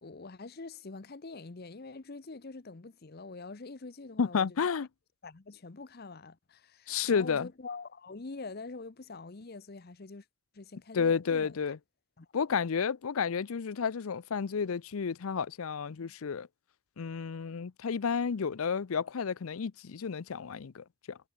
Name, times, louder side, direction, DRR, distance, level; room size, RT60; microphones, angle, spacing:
voice 1, 0.0-4.6 5.2-10.3 10.5-11.6 12.2-12.3, left 3 dB, 45° left, 0.8 m, -45 dB
voice 2, 4.2-4.9 6.9-7.5 10.9-11.8 12.3-16.5 17.0-21.2, left 6 dB, 80° left, 0.5 m, -31 dB
head